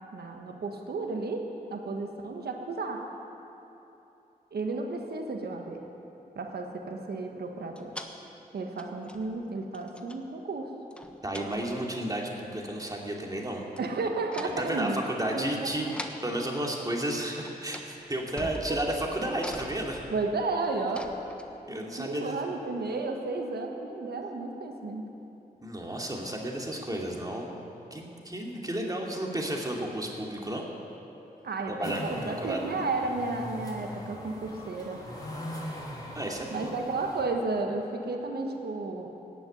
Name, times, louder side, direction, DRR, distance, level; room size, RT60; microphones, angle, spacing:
voice 1, 0.1-3.1 4.5-5.8 6.3-7.9 8.5-10.7 13.8-15.0 15.3-15.9 18.7-18.8 20.1-21.1 22.0-25.0 31.4-35.0 36.5-39.1, right 3 dB, 85° right, 3 dB, 1.4 m, -33 dB
sound 1, 7.8-8.2 8.8-9.4 9.7-10.2 10.9-11.9 13.8-14.0 14.3-14.7 15.9-16.3 17.2-17.3 17.4-17.9 18.2-21.8, equal, 5° left, 1.2 m, -43 dB
voice 2, 11.2-13.7 14.6-20.0 21.7-22.4 25.6-27.5 27.9-30.6 31.7-32.9 36.1-36.7, right 1 dB, 25° right, -1 dB, 2.6 m, -32 dB
sound 2, 31.8-37.2, left 1 dB, 25° left, 3.2 m, -41 dB
17.5 x 7.1 x 9.5 m, 2.9 s
cardioid pair, 50°, 16 cm